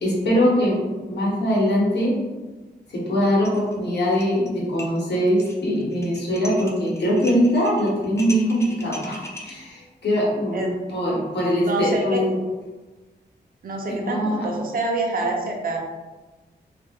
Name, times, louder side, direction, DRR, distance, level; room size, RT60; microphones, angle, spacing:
voice 1, 0.0-2.1 2.9-12.3 13.9-14.5, equal, 70° left, -4 dB, 0.9 m, -22 dB
sound 1, 3.4-3.7 4.0-4.5 4.8-9.5, left 1 dB, 15° left, 0.3 m, -39 dB
voice 2, 11.6-12.2 13.6-15.8, right 2 dB, 55° right, 0 dB, 0.5 m, -26 dB
2.4 x 2.2 x 3.5 m, 1.2 s
wide cardioid pair, 165°, 18 cm